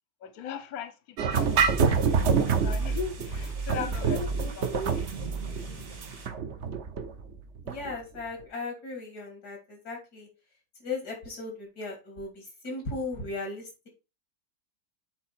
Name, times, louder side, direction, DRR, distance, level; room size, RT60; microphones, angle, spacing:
voice 1, 0.2-2.0 2.4-5.0, left 7 dB, 65° left, 1.3 m, -39 dB
sound 1, 1.2-7.9, right 5 dB, 50° right, 0.9 m, -27 dB
sound 2, 1.3-6.3, right 4 dB, 70° right, 2.5 m, -45 dB
voice 2, 3.7-4.9 7.6-10.3 10.8-13.9, left 3 dB, 85° left, 3.4 m, -37 dB
8.2 x 4.2 x 4.3 m
omnidirectional pair, 1.7 m